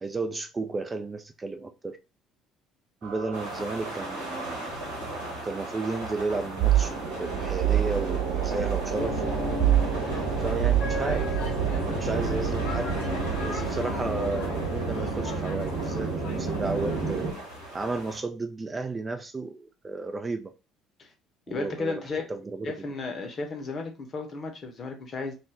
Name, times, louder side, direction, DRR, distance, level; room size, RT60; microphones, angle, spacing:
voice 1, 0.0-2.0 3.0-4.8 5.4-9.2 10.4-12.9 13.4-17.3 17.7-20.5 21.5-22.0 22.3-22.7, right 3 dB, 25° right, 0.3 m, -33 dB
sound 1, 3.0-17.3, right 9 dB, 55° right, 0.9 m, -29 dB
sound 2, 3.3-18.2, equal, 85° right, 1.1 m, -39 dB
sound 3, 8.9-17.1, left 2 dB, 70° left, 0.8 m, -34 dB
voice 2, 21.5-22.3 22.6-25.3, left 3 dB, 40° left, 0.8 m, -34 dB
2.4 x 2.1 x 3.3 m
figure-of-eight pair, 55°, 0 cm